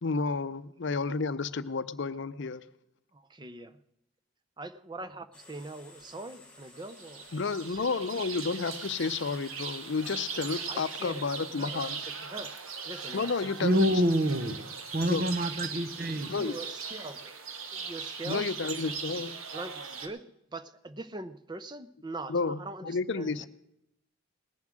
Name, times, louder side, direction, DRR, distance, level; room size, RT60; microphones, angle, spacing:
voice 1, 0.0-2.6 7.3-12.0 13.1-13.9 15.0-15.3 16.3-16.5 18.2-19.3 22.3-23.5, left 4 dB, 60° left, 14 dB, 0.6 m, -31 dB
voice 2, 3.1-3.7 4.6-7.2 7.7-7.9 10.7-12.5 12.9-13.8 16.3-17.3 17.7-18.4 19.2-20.2 20.5-23.5, right 2 dB, 20° right, 13 dB, 0.6 m, -42 dB
sound 1, 5.3-11.9, left 2 dB, 5° left, 2.9 m, -57 dB
sound 2, 6.8-20.1, right 5 dB, 80° right, 1.4 m, -40 dB
voice 3, 13.6-14.6 14.9-16.3, equal, 45° right, 11 dB, 0.9 m, -26 dB
19.5 x 7.2 x 6.3 m, 0.84 s
head